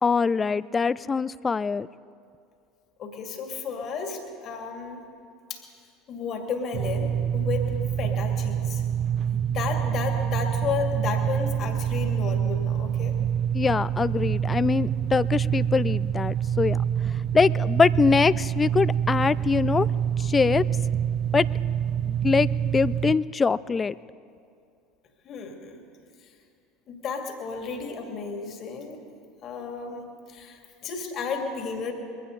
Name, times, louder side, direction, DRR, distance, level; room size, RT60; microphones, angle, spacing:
voice 1, 0.0-1.9 13.5-16.8 17.3-19.9 20.2-20.7 21.3-21.5 22.1-23.9, left 5 dB, 25° left, 20 dB, 0.3 m, -23 dB
voice 2, 3.0-5.0 5.5-5.6 6.1-7.7 8.0-8.8 9.5-13.1 25.2-25.8 26.9-29.0 29.4-31.9, left 5 dB, 45° left, 3 dB, 2.2 m, -33 dB
sound 1, 6.7-23.2, right 9 dB, 50° right, 0.6 m, -26 dB
21.5 x 16.0 x 3.9 m, 2.4 s
hypercardioid pair, 75°, 0 cm